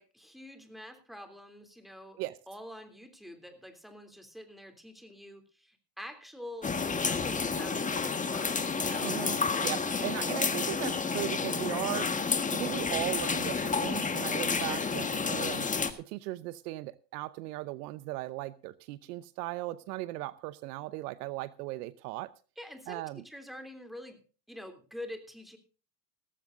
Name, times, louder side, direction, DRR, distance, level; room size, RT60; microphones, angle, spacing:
voice 1, 0.0-2.2 2.5-9.2 22.6-24.2 24.5-25.6, left 1 dB, ahead, 7 dB, 3.2 m, -46 dB
sound 1, 6.6-15.9, left 5 dB, 15° left, 1.5 m, -30 dB
voice 2, 9.0-9.4 9.6-12.1 12.5-15.7 16.0-22.3 22.9-23.2, right 18 dB, 70° right, 16 dB, 0.9 m, -37 dB
17.5 x 15.0 x 2.6 m, 0.37 s
hypercardioid pair, 105°, 50 cm